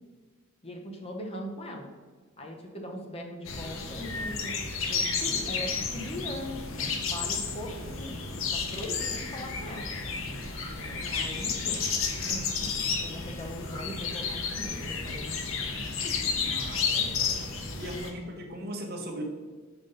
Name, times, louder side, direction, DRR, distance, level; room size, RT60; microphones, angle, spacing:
voice 1, 0.6-1.9 2.4-4.6 4.9-9.9 10.7-11.8 12.2-16.1 16.4-16.5, equal, 30° left, 2 dB, 0.9 m, -40 dB
sound 1, 3.5-18.1, left 5 dB, 70° left, 0.8 m, -32 dB
sound 2, 10.4-10.8 13.6-13.9, equal, 50° left, 1.5 m, -46 dB
voice 2, 16.5-17.4 17.8-19.2, right 1 dB, 50° right, 2 dB, 1.0 m, -38 dB
5.9 x 5.3 x 3.8 m, 1.4 s
head